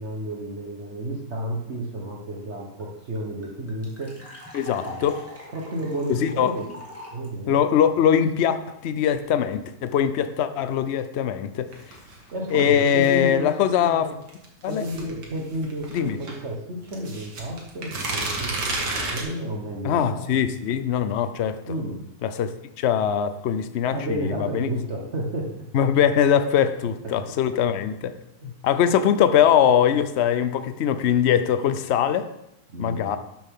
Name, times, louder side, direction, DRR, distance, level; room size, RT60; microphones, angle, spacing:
voice 1, 0.0-4.2 4.8-5.0 5.5-6.7 7.1-7.6 12.3-14.1 14.7-20.3 21.7-22.0 23.9-25.6 28.4-28.5 32.7-33.2, right 1 dB, 45° right, -1 dB, 1.4 m, -31 dB
sound 1, 2.5-2.6 2.8-2.9 3.1-7.3, left 1 dB, 10° right, 2.1 m, -42 dB
voice 2, 4.5-5.2 6.1-6.5 7.5-11.7 12.5-14.1 14.6-14.8 15.9-16.2 19.8-21.6 22.2-24.7 25.7-28.1 28.4-32.3 32.8-33.2, left 9 dB, 80° left, 10 dB, 0.6 m, -22 dB
sound 2, 11.7-13.3 14.3-16.4 16.9-19.2, right 2 dB, 70° right, 2.3 m, -31 dB
12.0 x 7.5 x 3.7 m, 0.85 s
omnidirectional pair, 1.9 m